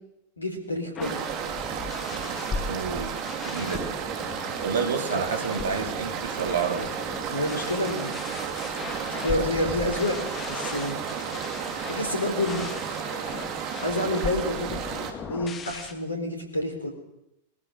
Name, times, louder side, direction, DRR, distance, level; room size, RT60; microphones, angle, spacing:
voice 1, 0.4-1.2 7.3-8.2 9.2-10.2 10.5-11.0 11.9-12.7 13.8-14.8 15.3-16.9, left 1 dB, 80° left, 4 dB, 4.0 m, -28 dB
sound 1, 0.9-15.9, left 5 dB, 25° left, 2.2 m, -38 dB
sound 2, 1.0-15.1, right 7 dB, 40° right, 3.1 m, -33 dB
voice 2, 2.7-3.2 3.4-3.9 4.6-6.9, right 5 dB, 65° right, 6 dB, 2.6 m, -29 dB
22.0 x 21.0 x 6.5 m, 0.87 s
figure-of-eight pair, 90°, 0 cm